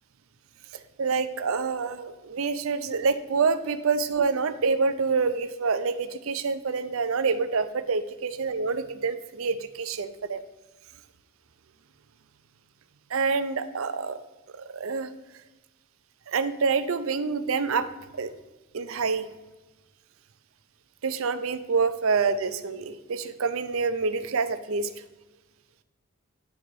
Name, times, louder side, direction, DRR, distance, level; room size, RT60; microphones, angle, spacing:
voice 1, 0.7-10.4 13.1-14.2 14.7-15.1 16.3-17.9 18.1-18.3 18.7-19.3 21.0-24.9, right 4 dB, 70° right, 11 dB, 0.5 m, -27 dB
10.0 x 3.9 x 4.6 m, 1.1 s
head